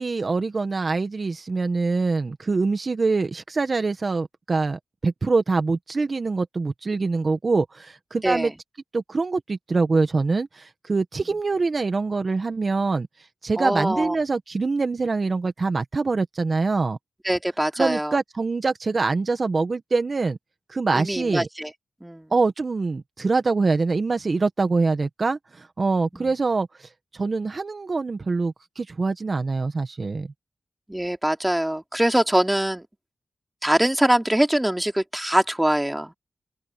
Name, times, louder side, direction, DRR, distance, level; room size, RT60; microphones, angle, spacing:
voice 1, 0.0-8.5 8.9-13.1 13.4-17.0 17.8-20.4 20.7-21.5 22.3-30.3, right 3 dB, 55° right, 1.6 m, -24 dB
voice 2, 13.6-14.2 17.2-18.2 20.9-21.7 22.0-22.3 26.1-26.3 30.9-32.8 33.6-36.1, right 1 dB, 10° right, 3.2 m, -23 dB
open air
cardioid pair, 50°, 0 cm